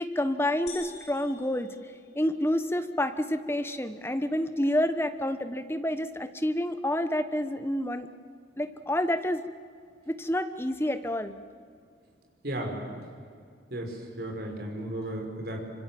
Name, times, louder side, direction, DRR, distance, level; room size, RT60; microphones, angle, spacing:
voice 1, 0.0-1.7 2.2-8.1 8.6-9.4 10.1-11.3, left 1 dB, 15° left, 9 dB, 1.1 m, -28 dB
sound 1, 0.7-2.6, left 5 dB, 35° left, 4.4 m, -47 dB
voice 2, 12.4-13.0 13.7-15.6, right 1 dB, 55° right, 2 dB, 5.3 m, -35 dB
26.5 x 25.0 x 7.7 m, 2.2 s
head